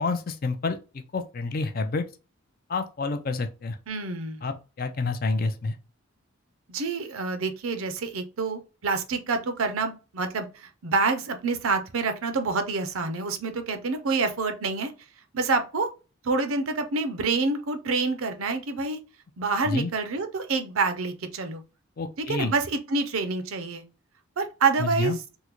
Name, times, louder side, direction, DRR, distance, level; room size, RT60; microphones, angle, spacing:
voice 1, 0.0-2.1 2.7-3.8 4.4-5.8 19.6-19.9 22.0-22.5 24.8-25.2, left 3 dB, 40° left, 0.4 m, -29 dB
voice 2, 3.9-4.4 6.7-14.9 15.3-15.9 16.2-19.0 19.4-21.6 22.2-23.8 24.4-25.2, right 4 dB, 75° right, 0.6 m, -27 dB
3.6 x 2.1 x 3.0 m
head